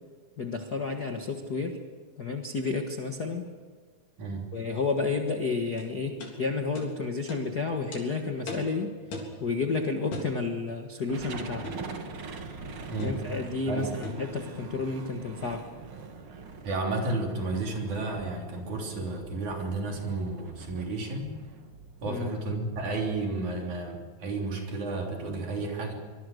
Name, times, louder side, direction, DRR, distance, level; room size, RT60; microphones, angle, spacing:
voice 1, 0.4-1.8 2.2-3.5 4.5-8.9 9.4-11.7 13.0-15.7 22.0-22.3, left 4 dB, 45° left, 4 dB, 1.3 m, -31 dB
voice 2, 4.2-4.5 12.9-13.2 13.7-13.9 16.6-21.4 22.0-25.9, right 2 dB, 60° right, 1 dB, 4.7 m, -32 dB
sound 1, 5.8-5.9 6.2-6.3 6.7-6.9 7.3-7.4 7.9-8.0 8.5-8.7 9.1-9.4 10.1-10.3 11.6-11.9 13.0-13.2 14.0-14.3, left 2 dB, 75° left, 5.2 m, -38 dB
sound 2, 11.1-23.5, right 4 dB, 45° right, 2.5 m, -44 dB
25.0 x 21.5 x 6.6 m, 1.5 s
omnidirectional pair, 3.9 m